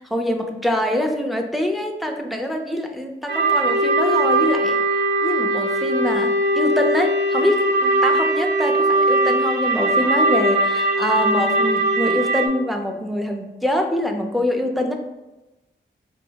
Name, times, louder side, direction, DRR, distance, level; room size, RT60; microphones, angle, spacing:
voice 1, 0.0-4.8 5.2-14.9, equal, ahead, 3 dB, 0.5 m, -24 dB
sound 1, 3.3-12.5, right 1 dB, 65° right, 0.6 m, -20 dB
4.0 x 2.6 x 2.8 m, 1.0 s
cardioid pair, 65°, 20 cm